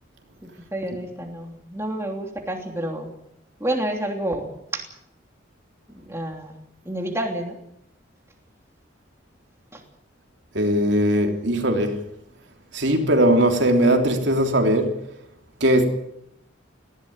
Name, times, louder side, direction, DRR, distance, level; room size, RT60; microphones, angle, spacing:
voice 1, 0.4-3.1 3.6-4.8 6.0-7.6 9.7-9.8, right 1 dB, 15° right, 3.0 m, -29 dB
voice 2, 10.5-12.1 12.7-15.0 15.6-15.8, right 1 dB, 65° right, 3.3 m, -19 dB
19.0 x 16.0 x 9.8 m
head